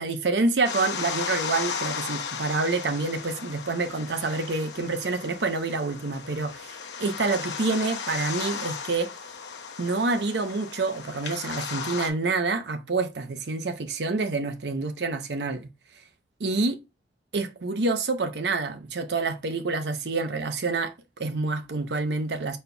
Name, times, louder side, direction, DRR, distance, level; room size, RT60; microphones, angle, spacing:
voice 1, 0.0-9.1 9.8-15.7 16.4-16.8 17.3-22.6, right 3 dB, 70° right, 0.7 m, -27 dB
sound 1, 0.6-12.1, left 6 dB, 75° left, 0.8 m, -35 dB
5.2 x 4.3 x 2.2 m
head